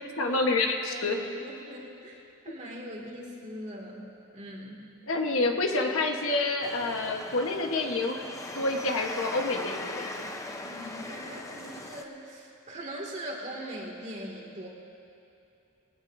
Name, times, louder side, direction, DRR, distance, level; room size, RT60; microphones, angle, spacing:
voice 1, 0.0-1.2 5.1-8.3 8.5-10.1, left 2 dB, 65° left, 2 dB, 1.2 m, -28 dB
voice 2, 0.9-4.1 4.3-4.8 10.6-14.7, equal, 35° right, -1 dB, 2.2 m, -41 dB
sound 1, 6.6-12.0, left 2 dB, 15° left, 0.7 m, -40 dB
21.5 x 17.5 x 2.7 m, 2.7 s
head